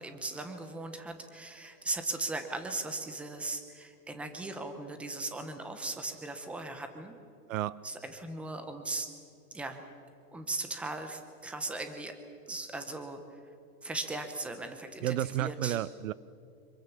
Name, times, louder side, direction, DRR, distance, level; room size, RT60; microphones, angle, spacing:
voice 1, 0.0-7.1 7.8-9.1 9.5-9.8 10.3-12.2 12.5-13.4 13.8-15.8, right 2 dB, 5° right, 7 dB, 0.8 m, -38 dB
voice 2, 7.5-7.8 15.0-16.1, right 13 dB, 55° right, 20 dB, 0.6 m, -31 dB
26.0 x 24.0 x 7.1 m, 2.6 s
supercardioid pair, 170°, 47 cm